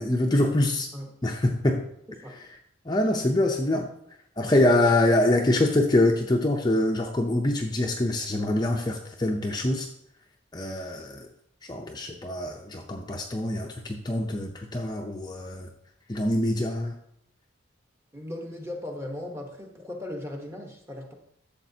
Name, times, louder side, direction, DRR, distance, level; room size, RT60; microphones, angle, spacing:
voice 1, 0.0-0.9 1.2-1.8 2.9-3.9 4.4-9.9 10.5-11.3 11.7-15.7 16.1-17.0, left 1 dB, 20° left, 1 dB, 0.5 m, -24 dB
voice 2, 18.1-21.1, left 1 dB, 10° right, 2 dB, 1.1 m, -37 dB
11.5 x 7.2 x 2.8 m, 0.73 s
head